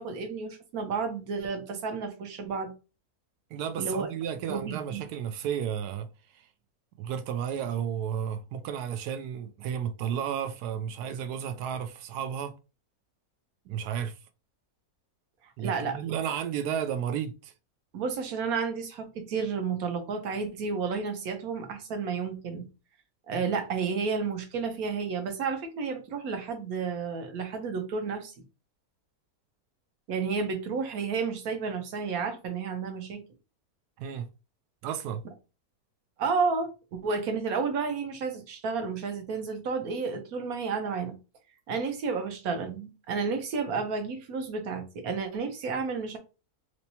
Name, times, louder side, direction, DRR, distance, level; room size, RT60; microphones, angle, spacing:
voice 1, 0.0-2.7 3.8-4.1 4.5-5.1 15.6-16.0 17.9-22.6 23.3-28.3 30.1-33.2 36.2-41.1 41.7-46.2, right 5 dB, 70° right, 1.2 m, -31 dB
voice 2, 3.5-6.1 6.3-6.4 7.0-12.5 13.7-14.1 15.6-17.5 34.0-34.3 34.8-35.2, right 8 dB, 90° right, 1.1 m, -32 dB
3.2 x 2.9 x 2.8 m
omnidirectional pair, 1.6 m